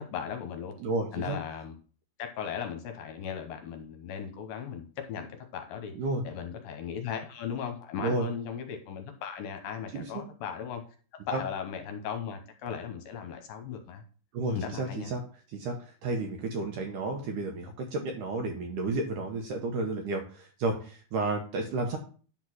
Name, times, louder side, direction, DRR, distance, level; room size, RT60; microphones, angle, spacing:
voice 1, 0.0-0.8 1.1-1.7 2.2-5.3 5.5-5.9 6.2-10.8 11.1-14.0 14.5-15.1, left 7 dB, 70° left, 5 dB, 2.4 m, -37 dB
voice 2, 0.8-1.4 5.9-6.2 8.0-8.3 9.9-10.2 11.3-11.4 14.3-15.2 15.5-22.0, right 3 dB, 70° right, 3 dB, 2.0 m, -32 dB
10.5 x 3.9 x 6.1 m, 0.40 s
omnidirectional pair, 4.7 m